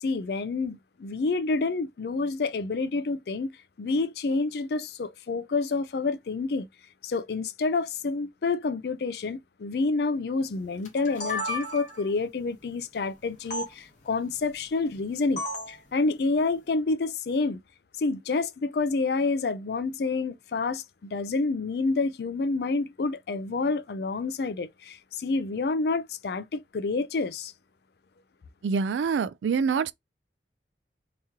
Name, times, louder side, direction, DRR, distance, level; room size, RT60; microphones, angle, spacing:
voice 1, 0.0-3.5 3.8-6.7 7.0-15.4 15.7-17.6 18.0-27.5, left 3 dB, 60° left, 0.4 m, -28 dB
sound 1, 10.8-12.1 13.5-13.7 15.4-15.8, left 1 dB, 40° left, 1.1 m, -32 dB
voice 2, 28.6-29.9, right 5 dB, 90° right, 0.3 m, -25 dB
3.0 x 2.9 x 3.5 m
head